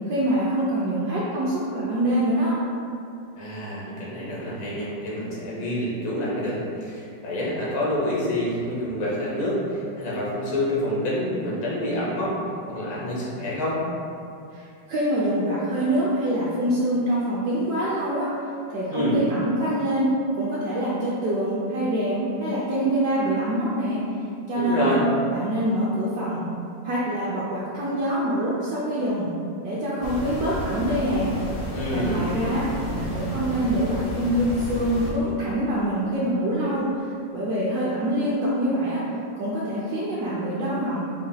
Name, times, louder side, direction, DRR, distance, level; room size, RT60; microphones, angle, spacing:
voice 1, 0.1-2.5 14.5-18.3 18.7-24.1 24.5-24.9 25.3-26.4 26.8-29.3 29.6-31.3 31.9-37.1 37.3-39.0 39.4-41.0, right 1 dB, 70° right, -7 dB, 0.9 m, -25 dB
voice 2, 3.4-12.4 12.7-13.8 18.9-19.2 24.6-25.0 31.7-32.4, left 1 dB, 80° left, -7 dB, 1.6 m, -27 dB
sound 1, 30.0-35.1, equal, 60° left, 0.9 m, -32 dB
4.9 x 2.2 x 2.7 m, 2.5 s
omnidirectional pair, 2.0 m